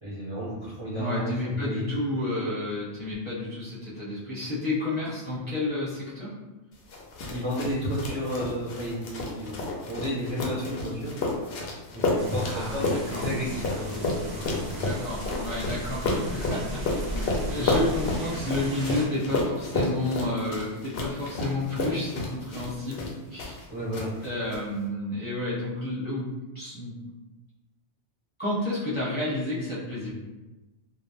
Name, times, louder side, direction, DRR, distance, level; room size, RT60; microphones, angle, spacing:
voice 1, 0.0-2.0 7.3-11.1 11.9-15.0 17.4-17.8 23.7-24.1, equal, 30° right, -10 dB, 0.7 m, -33 dB
voice 2, 1.0-6.3 12.4-13.5 14.8-23.6 24.2-27.0 28.4-30.1, left 1 dB, 10° left, -11 dB, 0.9 m, -31 dB
sound 1, 6.9-23.7 23.9-24.6, left 2 dB, 65° left, 0.7 m, -31 dB
sound 2, 12.2-19.1, right 1 dB, 65° right, 0.9 m, -36 dB
2.3 x 2.1 x 3.0 m, 1.1 s
omnidirectional pair, 1.2 m